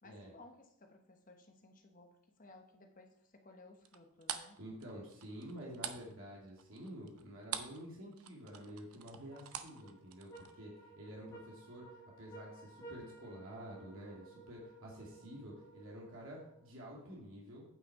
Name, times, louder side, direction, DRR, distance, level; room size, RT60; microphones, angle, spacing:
voice 1, 0.0-4.6, left 2 dB, 35° left, 5 dB, 1.0 m, -59 dB
sound 1, 3.8-7.9 8.1-10.5, right 9 dB, 85° right, 0.8 m, -44 dB
voice 2, 4.6-17.6, equal, 70° right, -3 dB, 2.4 m, -49 dB
sound 2, 9.3-16.9, right 3 dB, 15° left, 2.7 m, -56 dB
8.8 x 5.7 x 4.7 m, 0.74 s
head